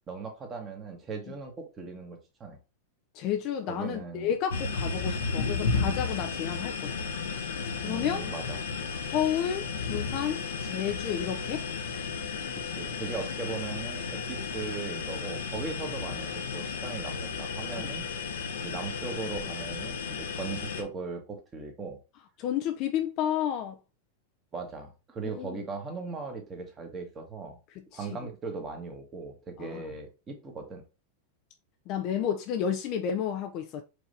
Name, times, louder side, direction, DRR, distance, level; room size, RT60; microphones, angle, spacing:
voice 1, 0.1-2.6 3.7-4.3 7.8-8.6 12.7-18.1 18.6-22.0 24.5-27.6 27.9-30.8, right 4 dB, 25° right, 1.3 m, -38 dB
voice 2, 3.1-7.0 7.8-8.2 9.1-11.6 17.7-17.9 22.4-23.8 25.2-25.6 27.8-28.2 29.6-29.8 31.9-33.8, left 9 dB, 50° left, 0.5 m, -31 dB
sound 1, 4.5-20.8, left 5 dB, 85° left, 0.8 m, -33 dB
4.7 x 2.6 x 3.3 m
hypercardioid pair, 115°, 0 cm